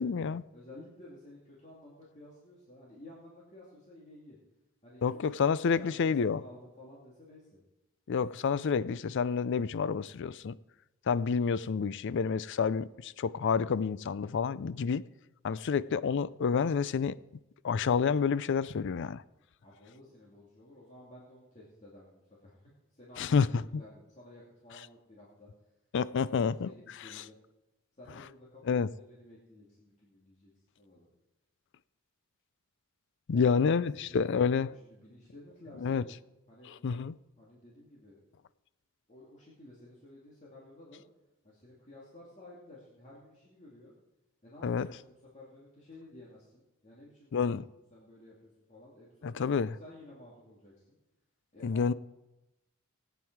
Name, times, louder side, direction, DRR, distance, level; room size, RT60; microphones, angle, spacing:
voice 1, 0.0-0.4 5.0-6.4 8.1-10.6 11.1-15.0 15.4-17.2 17.6-19.2 23.2-23.5 23.7-23.8 25.9-26.7 28.7-28.9 33.3-34.7 35.8-36.0 36.8-37.2 44.6-44.9 47.3-47.6 49.2-49.7 51.6-51.9, left 5 dB, 60° left, 0.4 m, -29 dB
voice 2, 0.5-4.4 4.8-7.6 19.6-22.5 22.9-25.5 26.1-27.4 27.9-30.5 30.8-31.1 33.3-33.6 34.1-36.1 36.5-37.0 37.4-38.2 39.1-41.0 41.4-43.9 44.4-47.5 47.9-49.5 49.8-51.0 51.5-51.9, left 1 dB, 35° left, 2.4 m, -53 dB
18.0 x 9.1 x 4.6 m
head